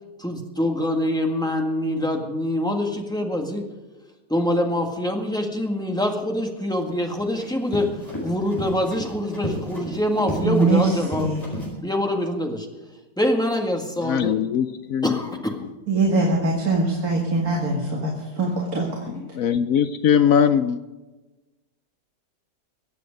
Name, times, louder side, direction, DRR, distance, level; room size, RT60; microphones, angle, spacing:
voice 1, 0.2-3.6 4.3-11.3 11.8-12.7 13.2-14.4 15.0-15.6, left 1 dB, ahead, 2 dB, 1.7 m, -25 dB
Run, 6.9-11.7, equal, 20° left, 4.7 m, -33 dB
voice 2, 10.4-11.4 15.9-19.1, right 2 dB, 60° right, -2 dB, 2.5 m, -22 dB
voice 3, 14.0-15.2 19.3-20.8, left 8 dB, 70° left, 11 dB, 0.9 m, -20 dB
22.5 x 8.4 x 5.2 m, 1.2 s
omnidirectional pair, 1.8 m